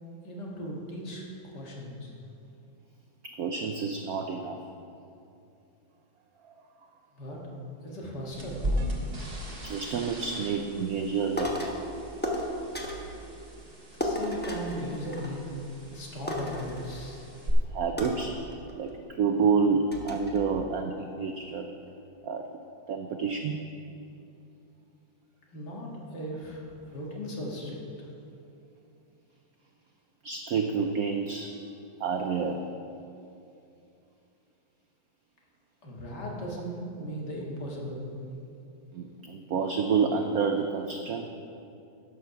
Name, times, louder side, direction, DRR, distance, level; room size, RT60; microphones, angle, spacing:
voice 1, 0.2-2.1 7.1-7.5 7.8-8.9 13.9-15.4 15.9-17.2 25.5-27.8 35.8-38.1, equal, 55° left, -2 dB, 2.3 m, -37 dB
voice 2, 3.2-4.6 6.5-6.6 9.6-11.8 17.7-18.4 18.7-21.7 22.2-22.5 22.9-23.7 30.2-31.5 32.0-32.6 38.9-41.3, right 5 dB, 75° right, 5 dB, 0.8 m, -29 dB
sound 1, 8.3-17.5, equal, 30° right, 1.6 m, -38 dB
sound 2, 11.4-11.8 12.2-13.1 14.0-15.6 15.9-16.0 16.3-17.3 18.0-18.9 19.4-19.5 19.9-20.4, left 1 dB, 15° left, 0.4 m, -34 dB
12.0 x 7.0 x 5.8 m, 2.7 s
omnidirectional pair, 2.2 m